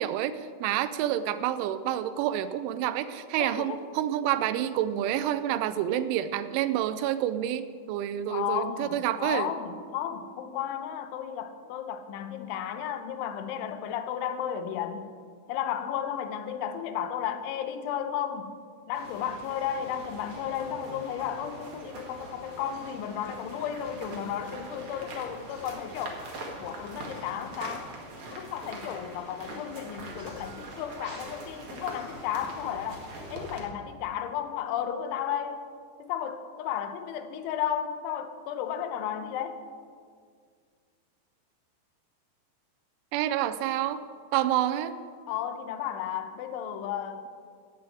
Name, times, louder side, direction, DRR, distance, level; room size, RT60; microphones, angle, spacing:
voice 1, 0.0-9.5 43.1-44.0 44.3-44.9, right 11 dB, 85° right, 12 dB, 3.1 m, -28 dB
voice 2, 3.4-3.9 8.3-15.1 15.5-18.6 18.9-26.2 26.6-27.9 28.3-33.0 33.3-35.6 36.0-39.6 45.3-47.3, left 9 dB, 85° left, 9 dB, 3.3 m, -33 dB
sound 1, 18.9-33.6, right 2 dB, 50° right, 1.6 m, -43 dB
14.5 x 7.7 x 9.1 m, 2.1 s
omnidirectional pair, 5.4 m